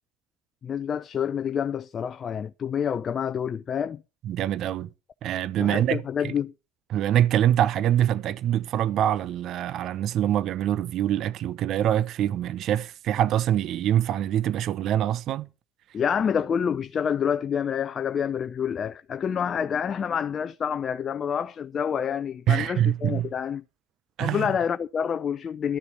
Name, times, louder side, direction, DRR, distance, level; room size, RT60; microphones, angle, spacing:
voice 1, 0.6-4.0 5.6-6.5 15.9-23.6 24.2-25.8, left 7 dB, 40° left, 0.5 m, -28 dB
voice 2, 4.2-4.9 5.2-6.3 6.9-15.5 22.5-23.3 24.2-24.5, right 11 dB, 55° right, 0.7 m, -24 dB
12.5 x 6.7 x 6.6 m
hypercardioid pair, 70°, 0 cm